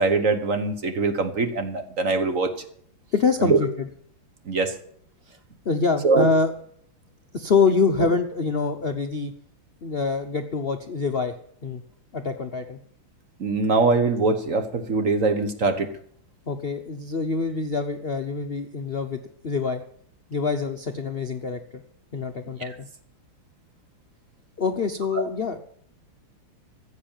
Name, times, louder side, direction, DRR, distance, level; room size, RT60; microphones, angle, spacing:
voice 1, 0.0-2.5 3.4-3.6 4.5-4.7 6.0-6.3 13.4-15.9 22.6-22.7, right 3 dB, 45° right, 8 dB, 1.3 m, -22 dB
voice 2, 3.1-3.9 5.6-6.5 7.3-9.3 9.8-11.3 11.6-11.8 12.1-12.8 16.5-19.8 20.3-21.8 22.1-22.9 24.6-25.6, left 4 dB, 80° left, 5 dB, 0.5 m, -25 dB
15.0 x 7.3 x 8.9 m, 0.65 s
omnidirectional pair, 2.3 m